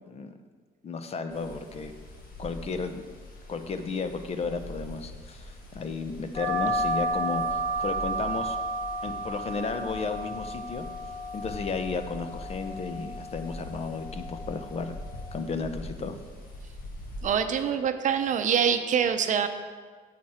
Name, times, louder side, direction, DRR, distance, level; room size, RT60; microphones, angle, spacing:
voice 1, 0.8-1.9 2.4-3.1 3.5-8.6 9.0-10.8 11.3-14.9 15.3-16.2, left 4 dB, 35° left, 9 dB, 0.7 m, -33 dB
sound 1, 1.3-17.3, left 1 dB, 60° left, 1.9 m, -43 dB
sound 2, 6.3-15.4, right 1 dB, 20° left, 2.2 m, -33 dB
voice 2, 17.2-19.5, right 7 dB, 50° right, 8 dB, 0.7 m, -25 dB
9.2 x 7.6 x 4.3 m, 1.5 s
cardioid pair, 110°, 17 cm